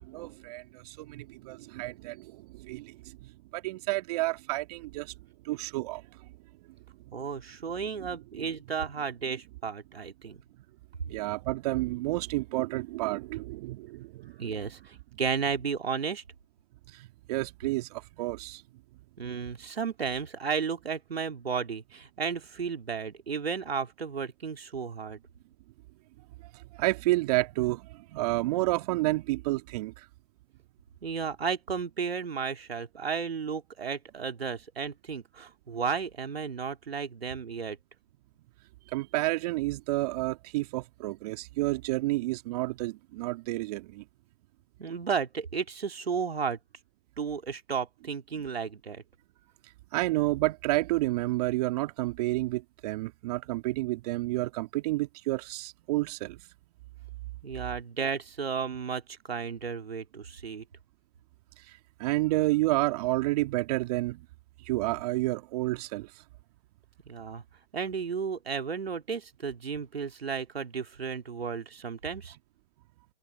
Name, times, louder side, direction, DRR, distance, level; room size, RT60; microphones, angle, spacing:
voice 1, 0.0-5.1 5.4-6.0 8.3-8.4 11.1-14.3 16.9-18.6 26.5-29.9 38.9-44.0 49.9-56.4 62.0-64.2 64.7-66.1, right 19 dB, 40° right, 2.5 m, -30 dB
voice 2, 7.1-10.4 14.4-16.2 19.2-25.2 31.0-37.8 44.8-46.6 47.2-49.0 57.4-60.6 67.1-67.4 67.7-72.4, right 6 dB, 80° right, 2.8 m, -33 dB
hypercardioid pair, 130°, 30 cm